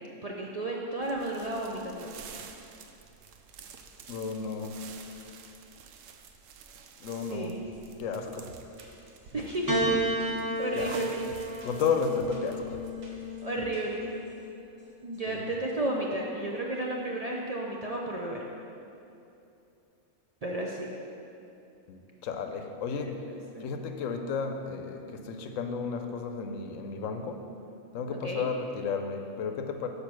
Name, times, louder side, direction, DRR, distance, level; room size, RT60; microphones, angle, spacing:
voice 1, 0.2-2.1 7.2-7.6 9.3-10.0 10.6-11.2 13.4-14.1 15.0-18.4 20.4-20.9 23.1-23.7 28.1-28.5, right 1 dB, 45° right, -2 dB, 0.5 m, -33 dB
sound 1, 1.0-13.3, right 6 dB, 80° right, 0.9 m, -49 dB
voice 2, 4.1-4.8 7.0-7.5 8.0-8.5 10.7-10.9 11.6-12.8 15.3-15.4 21.9-23.2 23.6-27.4 27.9-29.9, left 5 dB, 85° left, 5 dB, 1.0 m, -33 dB
sound 2, 7.5-7.9 8.2-14.4 14.8-14.9 15.1-15.3, equal, 60° right, 1.5 m, -52 dB
Piano, 9.7-14.2 15.2-15.9, right 1 dB, 20° right, 0.8 m, -32 dB
6.7 x 5.0 x 6.0 m, 2.7 s
omnidirectional pair, 1.3 m